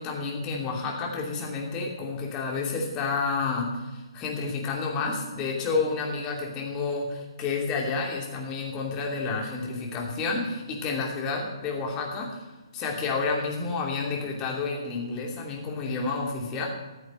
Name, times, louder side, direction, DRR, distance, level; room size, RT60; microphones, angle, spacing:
voice 1, 0.0-12.5 12.7-16.7, left 4 dB, 20° left, -1 dB, 2.8 m, -30 dB
14.5 x 8.0 x 7.6 m, 1.2 s
figure-of-eight pair, 135°, 3 cm